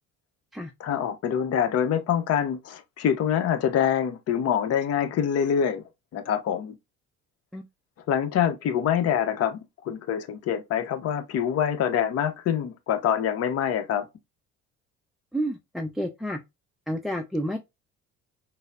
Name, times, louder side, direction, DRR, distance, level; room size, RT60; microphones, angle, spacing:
voice 1, 0.8-5.8 6.1-6.8 8.1-14.1, left 9 dB, 45° left, 0.7 m, -25 dB
voice 2, 15.3-16.4 16.9-17.6, equal, ahead, 0.3 m, -30 dB
3.9 x 2.0 x 2.2 m
hypercardioid pair, 65°, 34 cm